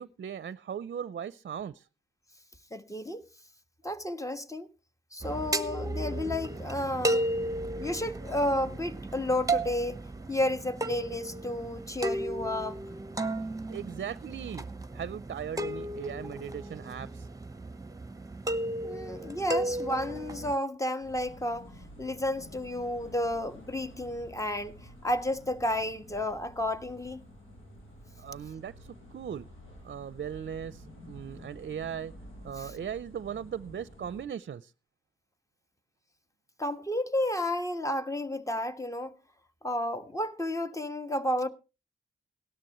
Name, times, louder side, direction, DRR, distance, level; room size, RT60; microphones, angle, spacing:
voice 1, 0.0-1.9 13.7-14.7 14.9-17.3 28.2-29.5 29.8-32.1 32.4-34.7, right 8 dB, 60° right, 0.6 m, -38 dB
voice 2, 2.7-3.2 3.8-4.7 5.1-7.3 7.8-10.0 10.3-12.8 18.8-21.7 22.0-27.2 32.6-32.7 36.6-39.2 39.6-41.5, left 1 dB, 15° left, 1.5 m, -32 dB
sound 1, 5.2-20.5, right 2 dB, 15° right, 1.1 m, -34 dB
sound 2, 21.0-34.2, equal, 80° left, 7.8 m, -50 dB
17.5 x 12.5 x 3.1 m
cardioid pair, 50°, 20 cm